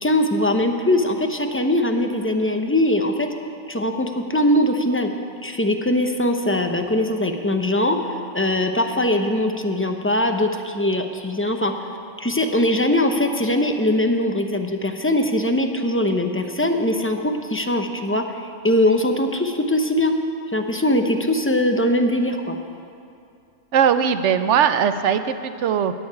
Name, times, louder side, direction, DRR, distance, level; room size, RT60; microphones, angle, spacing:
voice 1, 0.0-3.3 3.7-5.1 5.4-8.0 8.3-11.8 12.2-20.2 20.5-22.6, left 1 dB, 15° left, 4 dB, 0.6 m, -21 dB
voice 2, 23.7-25.9, right 8 dB, 70° right, 10 dB, 1.0 m, -19 dB
13.0 x 7.1 x 9.6 m, 2.5 s
omnidirectional pair, 1.3 m